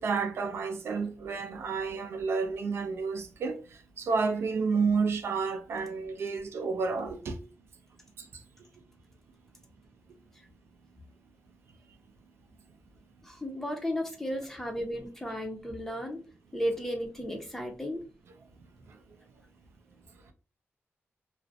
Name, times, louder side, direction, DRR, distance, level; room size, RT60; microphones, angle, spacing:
voice 1, 0.0-3.6 4.0-7.4, right 5 dB, 70° right, 0.4 m, -30 dB
voice 2, 13.2-16.2 16.5-18.1, equal, 10° left, 0.5 m, -34 dB
2.4 x 2.0 x 2.5 m
wide cardioid pair, 155°, 4 cm